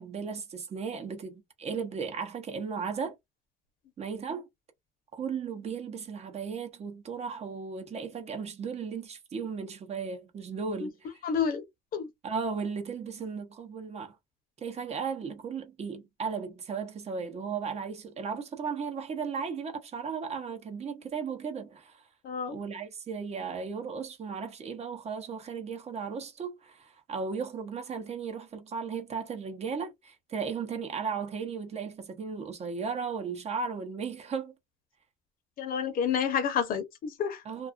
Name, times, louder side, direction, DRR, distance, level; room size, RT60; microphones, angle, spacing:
voice 1, 0.0-3.2 4.0-4.5 5.1-11.1 12.2-14.2 14.6-22.0 22.5-34.5 37.5-37.7, right 5 dB, 40° right, 0.7 m, -36 dB
voice 2, 11.2-11.6 11.9-12.1 22.2-22.6 35.6-37.4, left 7 dB, 60° left, 0.7 m, -29 dB
2.4 x 2.3 x 2.5 m
cardioid pair, 110°, 17 cm